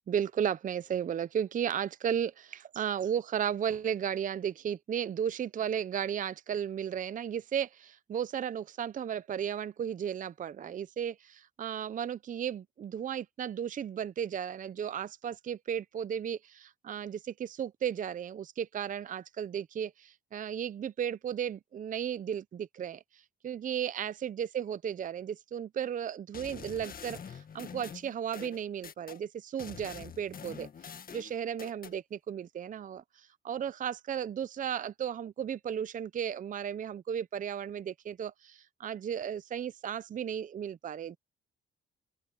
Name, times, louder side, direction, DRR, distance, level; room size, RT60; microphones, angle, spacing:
voice 1, 0.1-41.2, right 8 dB, 40° right, 0.6 m, -35 dB
sound 1, 26.3-29.2 29.6-32.0, left 7 dB, 45° left, 1.8 m, -45 dB
open air
cardioid pair, 90°, 20 cm